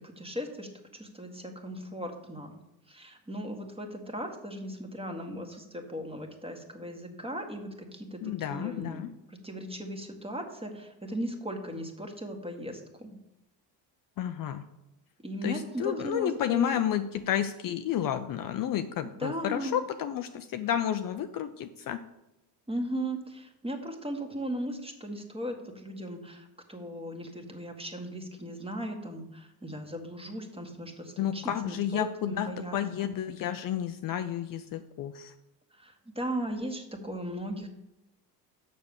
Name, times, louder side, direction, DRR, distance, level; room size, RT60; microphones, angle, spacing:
voice 1, 0.0-2.6 2.9-9.0 9.3-13.2 15.2-16.9 19.0-19.8 22.7-32.8 35.7-37.7, equal, 10° right, 3 dB, 1.8 m, -37 dB
voice 2, 8.2-9.1 14.2-14.6 15.4-22.0 31.2-35.3, left 10 dB, 45° left, 8 dB, 0.6 m, -31 dB
6.7 x 6.5 x 7.1 m, 0.91 s
supercardioid pair, 85°, 47 cm